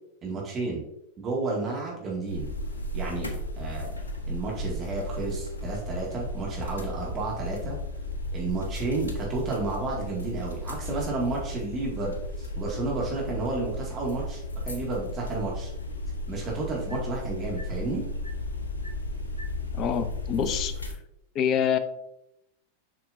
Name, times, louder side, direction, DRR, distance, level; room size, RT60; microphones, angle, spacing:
voice 1, 0.2-0.8 1.2-2.5 2.9-3.3 3.6-3.9 4.3-7.8 8.3-15.7 16.3-18.0, right 3 dB, 25° right, -3 dB, 2.1 m, -31 dB
sound 1, 2.3-20.9, left 1 dB, 75° left, 1.1 m, -34 dB
voice 2, 19.7-20.7 21.3-21.8, left 8 dB, 35° left, 10 dB, 0.7 m, -26 dB
7.5 x 5.9 x 2.6 m, 0.82 s
figure-of-eight pair, 90°, 0 cm